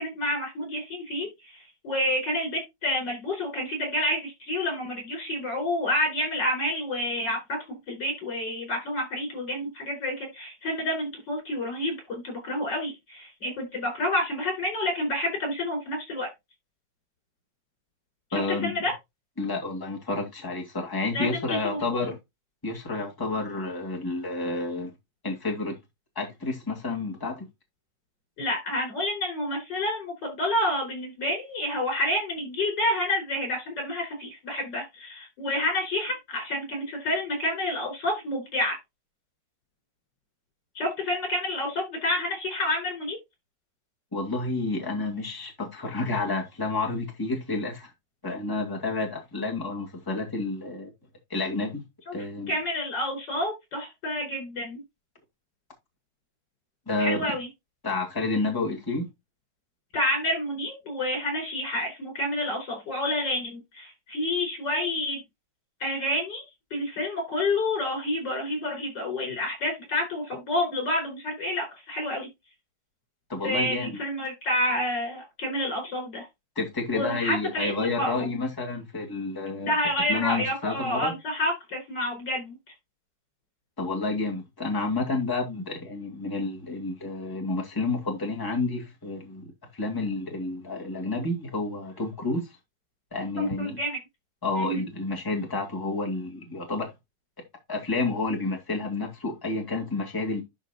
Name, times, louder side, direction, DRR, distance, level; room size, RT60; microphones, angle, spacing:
voice 1, 0.0-7.4 7.7-16.3 18.3-18.9 21.1-22.1 28.4-38.8 40.8-43.2 52.1-52.2 52.5-54.8 57.0-57.5 59.9-65.2 65.8-66.4 66.7-72.3 73.4-76.3 76.9-78.1 79.6-82.6 93.4-94.0 94.6-94.8, left 1 dB, 70° left, 6.0 m, -29 dB
voice 2, 18.3-18.7 19.4-22.2 22.6-24.9 25.2-25.8 26.2-27.5 44.1-47.9 48.2-50.9 51.3-51.8 52.1-52.5 56.9-57.2 57.8-59.1 73.3-74.0 76.6-79.8 80.1-81.1 83.8-89.5 89.7-92.5 93.1-93.8 94.4-96.9 97.7-100.4, left 3 dB, 10° left, 2.3 m, -30 dB
12.0 x 4.5 x 3.0 m
omnidirectional pair, 2.0 m